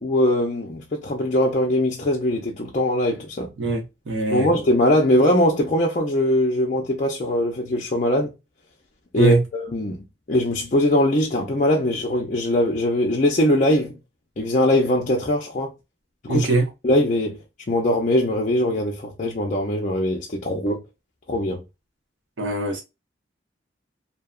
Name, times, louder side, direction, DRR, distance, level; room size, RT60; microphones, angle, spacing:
voice 1, 0.0-3.5 4.3-8.3 9.1-13.9 14.4-15.7 16.2-16.5 16.8-17.4 17.7-20.8 21.3-21.6, left 1 dB, 40° left, 0.5 m, -21 dB
voice 2, 3.6-4.5 9.2-9.4 16.3-16.7 22.4-22.8, right 3 dB, 85° right, 0.9 m, -22 dB
2.7 x 2.2 x 2.2 m
head